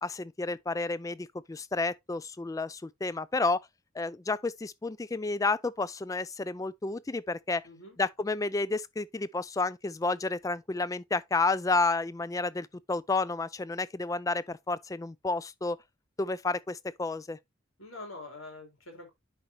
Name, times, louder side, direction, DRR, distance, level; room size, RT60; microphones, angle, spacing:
voice 1, 0.0-3.6 4.0-7.6 8.0-15.8 16.2-17.4, left 3 dB, 15° left, 0.3 m, -31 dB
voice 2, 7.6-8.0 17.8-19.1, left 2 dB, 75° left, 3.3 m, -45 dB
10.0 x 4.4 x 2.8 m
head